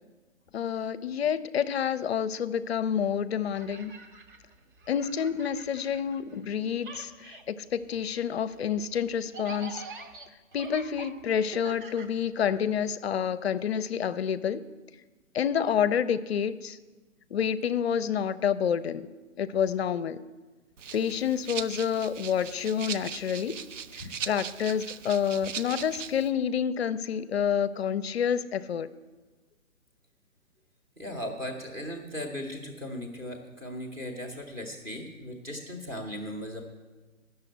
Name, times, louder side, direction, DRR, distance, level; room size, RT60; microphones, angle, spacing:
voice 1, 0.5-3.9 4.9-7.1 7.5-9.8 10.5-14.6 15.3-16.8 17.3-19.1 19.4-20.2 20.9-23.6 24.3-28.9, left 8 dB, 50° left, 15 dB, 0.5 m, -28 dB
sound 1, 3.4-6.5 6.8-12.8, right 3 dB, 40° right, 1.0 m, -46 dB
Rattle (instrument), 20.8-26.3, right 7 dB, 65° right, 0.6 m, -39 dB
voice 2, 31.0-36.7, equal, 10° right, 1 dB, 0.7 m, -37 dB
9.8 x 6.7 x 8.0 m, 1.3 s
hypercardioid pair, 145°, 41 cm